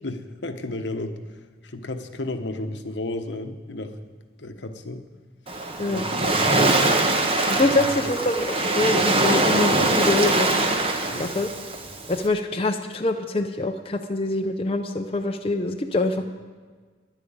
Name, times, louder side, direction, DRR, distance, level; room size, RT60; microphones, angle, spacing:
voice 1, 0.0-4.0 4.4-5.0 5.8-6.5 7.6-8.1 11.1-11.3 16.2-16.3, left 2 dB, 70° left, 7 dB, 1.1 m, -33 dB
Waves surf, 5.5-12.3, right 2 dB, 30° right, 1.0 m, -22 dB
voice 2, 7.5-10.7 11.2-11.5 12.1-16.3, left 2 dB, 30° left, 3 dB, 0.6 m, -25 dB
11.0 x 9.0 x 8.8 m, 1.5 s
head